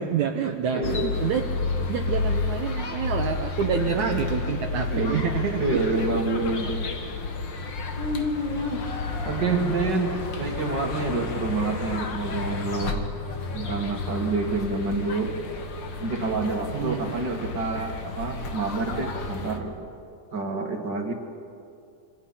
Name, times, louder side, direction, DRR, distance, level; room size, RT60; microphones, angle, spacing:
voice 1, 0.0-0.9 1.2-1.4 1.9-6.0 9.3-9.8 10.4-10.5 16.7-17.2, right 7 dB, 70° right, 2 dB, 2.4 m, -28 dB
voice 2, 0.7-1.1 1.8-1.9 3.8-4.0 4.9-5.3 5.6-6.8 8.0-8.9 9.2-13.0 13.5-15.3 16.0-19.7 20.3-21.1, right 3 dB, 35° right, 2 dB, 2.2 m, -28 dB
sound 1, 0.8-19.6, left 4 dB, 45° left, 1.7 m, -31 dB
27.0 x 26.0 x 5.8 m, 2.5 s
omnidirectional pair, 3.8 m